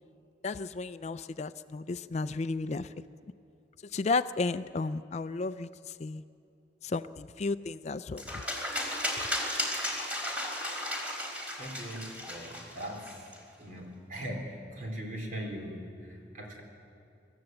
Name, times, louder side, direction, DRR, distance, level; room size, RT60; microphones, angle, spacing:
voice 1, 0.4-3.0 3.9-5.7 6.0-6.2 6.8-8.3, left 3 dB, 40° left, 13 dB, 0.4 m, -33 dB
sound 1, 8.2-13.4, left 1 dB, 10° right, 3.3 m, -35 dB
voice 2, 11.6-13.3 13.6-16.6, equal, 50° right, 1 dB, 3.8 m, -40 dB
24.5 x 14.0 x 7.8 m, 2.7 s
head